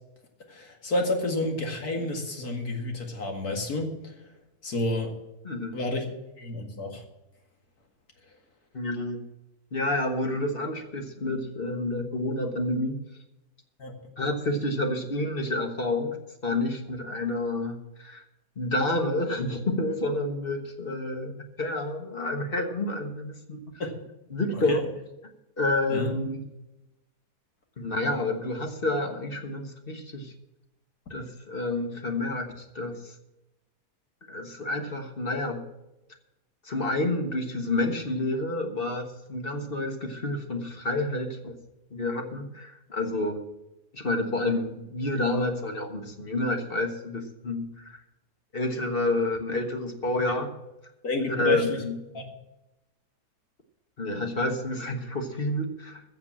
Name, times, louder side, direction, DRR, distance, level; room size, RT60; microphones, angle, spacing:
voice 1, 0.5-4.1 4.6-5.1 5.7-6.0 6.4-7.0 13.8-13.9 23.8-23.9 24.7-24.8 25.9-26.1 51.0-51.8 52.1-52.2, left 2 dB, 70° left, 2 dB, 2.6 m, -30 dB
voice 2, 5.4-5.7 8.7-9.2 9.7-13.0 14.2-16.2 16.4-18.2 18.6-23.6 24.3-24.8 25.6-26.4 27.8-30.3 31.1-33.1 34.3-35.6 36.6-41.6 41.9-43.4 43.9-48.0 48.5-50.5 51.3-51.9 54.0-56.0, left 2 dB, 40° left, 4 dB, 1.5 m, -29 dB
15.0 x 6.7 x 7.5 m, 0.96 s
omnidirectional pair, 1.7 m